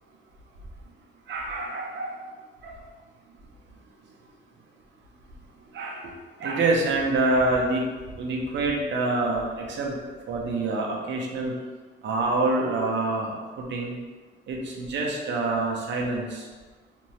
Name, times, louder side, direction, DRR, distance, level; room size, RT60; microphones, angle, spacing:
voice 1, 1.3-2.2 2.6-2.7 5.7-6.1 6.4-7.8 8.1-10.0 10.3-11.5 12.0-13.9 14.5-16.5, right 2 dB, 65° right, -1 dB, 0.7 m, -26 dB
2.7 x 2.6 x 3.1 m, 1.4 s
cardioid pair, 90°, 20 cm